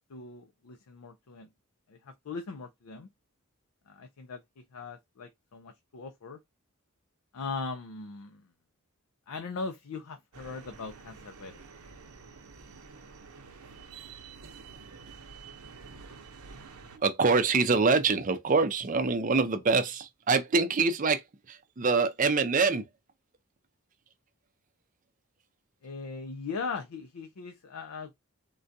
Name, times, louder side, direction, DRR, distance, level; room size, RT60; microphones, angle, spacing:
voice 1, 0.0-1.5 1.9-3.1 3.9-4.4 4.7-6.4 7.3-8.5 9.3-11.6 25.8-28.2, left 4 dB, 80° left, 0.5 m, -39 dB
sound 1, 10.3-17.0, right 4 dB, 80° right, 0.7 m, -49 dB
voice 2, 16.9-22.9, right 4 dB, 35° right, 0.4 m, -25 dB
3.7 x 2.3 x 2.6 m
head